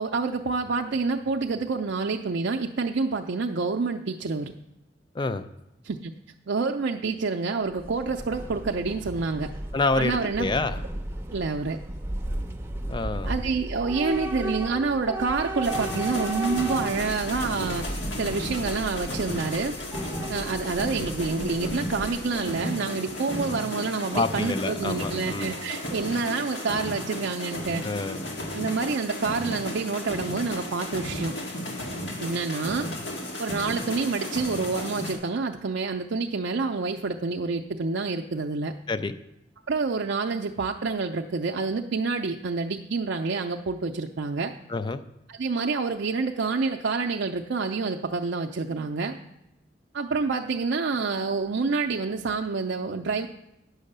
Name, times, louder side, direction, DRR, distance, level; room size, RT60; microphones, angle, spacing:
voice 1, 0.0-4.5 5.8-6.1 6.5-9.5 9.9-10.5 11.3-11.8 13.3-17.8 18.2-19.7 20.3-27.8 28.5-31.3 32.2-32.9 33.4-38.7 39.7-44.5 45.3-49.2 49.9-53.3, right 4 dB, 70° right, 2 dB, 0.5 m, -28 dB
voice 2, 5.1-5.5 9.7-10.8 12.9-13.3 24.1-25.6 27.8-28.2 38.9-39.2 44.7-45.0, left 3 dB, 25° left, 11 dB, 0.5 m, -27 dB
Train / Subway metro underground, 7.7-22.5, right 1 dB, 15° right, 0.7 m, -35 dB
sound 1, 15.6-35.1, left 1 dB, 80° left, 1.9 m, -34 dB
9.6 x 6.3 x 6.6 m, 0.89 s
head